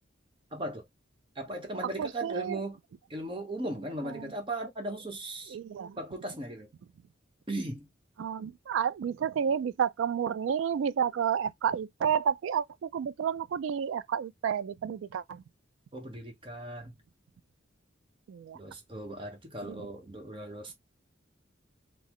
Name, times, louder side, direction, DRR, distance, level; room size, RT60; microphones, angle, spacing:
voice 1, 0.5-0.8 1.4-2.8 3.1-5.6 6.0-6.7 7.5-7.9 15.9-16.9 18.5-20.7, right 1 dB, 25° right, 0.9 m, -37 dB
voice 2, 2.0-2.6 4.0-4.3 5.5-6.0 8.2-15.4 18.3-18.6 19.6-19.9, right 8 dB, 75° right, 0.3 m, -31 dB
3.8 x 2.0 x 3.0 m
head